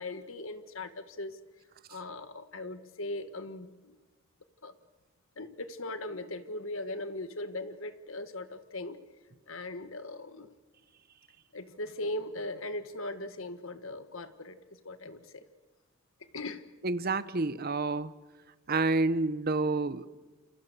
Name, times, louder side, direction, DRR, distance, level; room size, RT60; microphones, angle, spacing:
voice 1, 0.0-1.4 1.9-4.0 4.6-4.7 5.4-9.0 9.5-10.5 11.5-14.6 14.8-15.4 16.3-16.6, left 2 dB, 65° left, 11 dB, 1.6 m, -39 dB
voice 2, 16.8-18.1 18.7-20.1, right 3 dB, 45° right, 15 dB, 0.9 m, -29 dB
28.5 x 27.5 x 6.8 m, 1.2 s
head